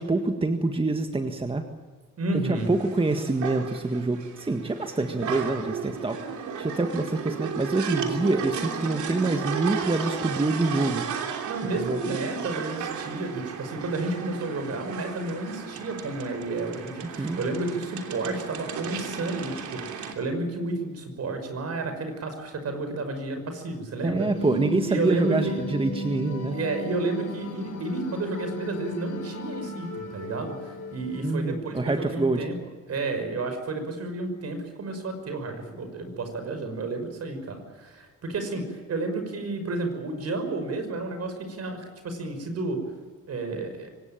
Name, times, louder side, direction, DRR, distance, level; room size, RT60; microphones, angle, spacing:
voice 1, 0.0-1.6 2.3-11.1 11.9-12.0 17.2-17.4 24.0-26.6 31.2-32.5, right 2 dB, 20° right, 6 dB, 1.7 m, -26 dB
voice 2, 2.2-2.7 11.4-24.3 24.9-25.6 26.5-32.6 32.9-42.8 43.3-43.9, right 2 dB, 55° right, 7 dB, 5.8 m, -31 dB
sound 1, 2.6-20.1, right 7 dB, 75° right, 3.2 m, -34 dB
sound 2, 24.2-31.4, equal, 65° left, 7.1 m, -35 dB
24.5 x 18.5 x 9.0 m, 1.4 s
cardioid pair, 90°, 30 cm